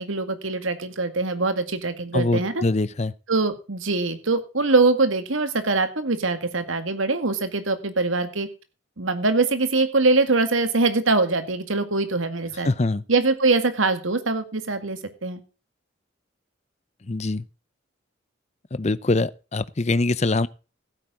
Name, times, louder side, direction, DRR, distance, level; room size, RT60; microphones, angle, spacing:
voice 1, 0.0-2.6 3.3-8.5 9.0-12.7 13.1-15.4, right 3 dB, 85° right, 2.1 m, -23 dB
voice 2, 2.1-3.1 12.6-13.0 17.1-17.4 18.7-20.5, left 2 dB, 35° left, 0.6 m, -23 dB
15.5 x 9.2 x 3.8 m
head